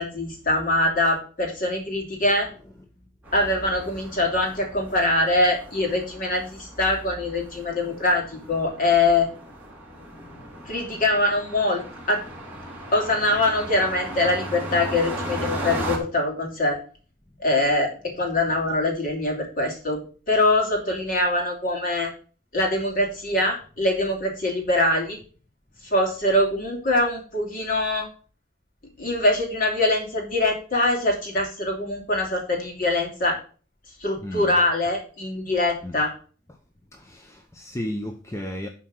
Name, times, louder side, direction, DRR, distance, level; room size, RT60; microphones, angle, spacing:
voice 1, 0.0-2.5 3.3-9.3 10.7-11.8 12.1-12.2 12.9-16.8 17.4-20.0 20.3-22.1 22.5-25.2 25.8-28.1 29.0-33.4 34.0-36.1, left 2 dB, 45° left, 3.0 m, -23 dB
sound 1, 3.2-16.0, right 1 dB, 10° right, 2.5 m, -36 dB
voice 2, 10.0-10.7 34.2-34.6 35.8-36.0 36.5-36.6 36.9-38.7, left 1 dB, 15° left, 0.7 m, -35 dB
11.0 x 4.5 x 6.2 m
head